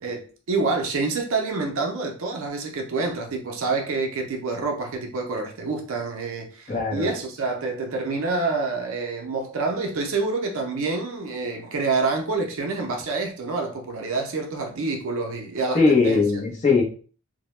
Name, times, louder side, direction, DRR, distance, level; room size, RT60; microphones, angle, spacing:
voice 1, 0.0-16.2, right 3 dB, 65° right, 0.5 m, -27 dB
voice 2, 6.7-7.1 15.7-16.8, left 4 dB, 35° left, 0.6 m, -20 dB
2.1 x 2.0 x 3.0 m
head